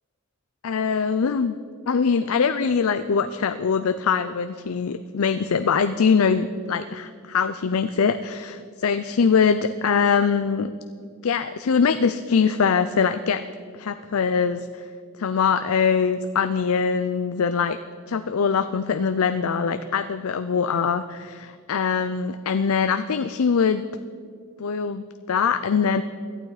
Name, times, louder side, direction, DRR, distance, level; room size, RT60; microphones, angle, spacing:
voice 1, 0.6-1.6 1.8-10.7 11.2-13.4 13.8-14.8 15.2-17.8 18.1-23.9 24.6-26.0, left 6 dB, 90° left, 11 dB, 0.5 m, -22 dB
17.5 x 12.0 x 4.9 m, 2.1 s
head